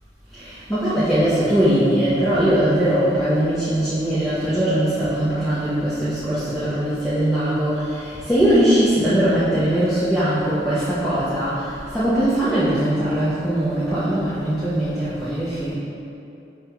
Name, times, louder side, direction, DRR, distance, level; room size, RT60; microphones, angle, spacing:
voice 1, 0.3-15.7, right 1 dB, ahead, -14 dB, 0.5 m, -20 dB
5.3 x 2.2 x 2.9 m, 2.7 s
head